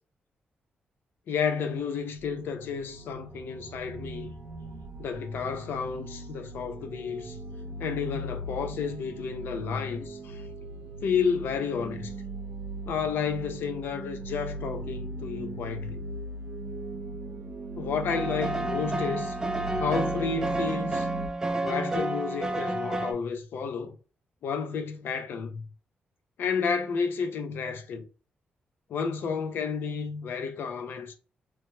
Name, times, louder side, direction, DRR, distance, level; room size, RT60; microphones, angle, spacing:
voice 1, 1.3-4.3 5.0-7.4 7.8-10.4 11.0-12.1 12.9-16.0 17.8-19.4 19.8-21.1 21.6-24.0 24.4-25.6 26.4-28.0 28.9-31.1, left 6 dB, 80° left, 0.5 m, -31 dB
sound 1, 1.8-21.3, right 2 dB, 60° right, 0.7 m, -39 dB
sound 2, 18.1-23.1, right 2 dB, 15° right, 0.4 m, -30 dB
3.0 x 2.1 x 3.1 m
cardioid pair, 100°, 4 cm